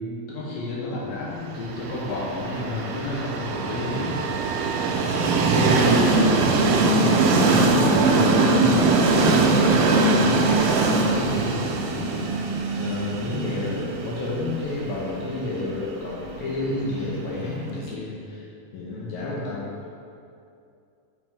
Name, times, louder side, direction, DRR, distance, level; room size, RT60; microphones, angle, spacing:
voice 1, 0.0-4.2 5.5-6.8 7.0-10.7 11.1-18.5 18.7-19.7, left 2 dB, 70° left, -5 dB, 2.4 m, -30 dB
Train, 1.7-17.5, right 3 dB, 85° right, 2.0 m, -21 dB
7.8 x 5.9 x 3.6 m, 2.5 s
omnidirectional pair, 4.7 m